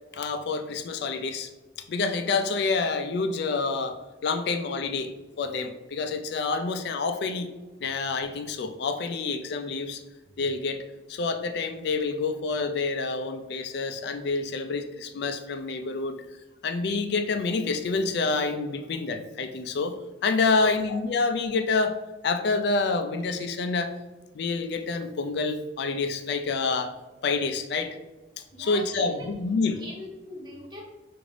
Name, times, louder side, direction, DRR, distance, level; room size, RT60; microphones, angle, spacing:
voice 1, 0.1-1.5 1.9-7.5 7.8-10.0 10.4-10.8 11.1-16.2 16.6-23.9 24.3-26.9 27.2-28.0 28.6-29.8, left 4 dB, 60° left, 7 dB, 0.3 m, -28 dB
voice 2, 28.5-29.3 29.8-30.8, equal, 25° right, -2 dB, 0.9 m, -41 dB
4.9 x 2.5 x 3.2 m, 1.1 s
head